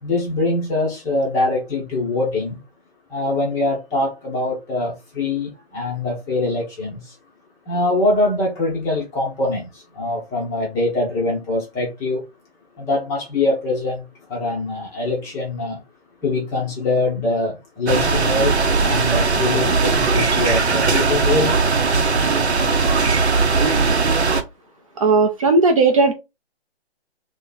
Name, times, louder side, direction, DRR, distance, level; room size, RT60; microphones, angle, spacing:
voice 1, 0.0-2.6 3.1-7.1 7.7-12.2 12.8-14.0 14.3-15.8 16.2-18.5 18.8-21.5, left 2 dB, 10° left, 0.6 m, -23 dB
sound 1, 17.9-24.4, right 4 dB, 85° right, 0.9 m, -18 dB
voice 2, 25.0-26.1, right 3 dB, 30° right, 0.6 m, -15 dB
2.9 x 2.8 x 3.9 m
figure-of-eight pair, 145°, 33 cm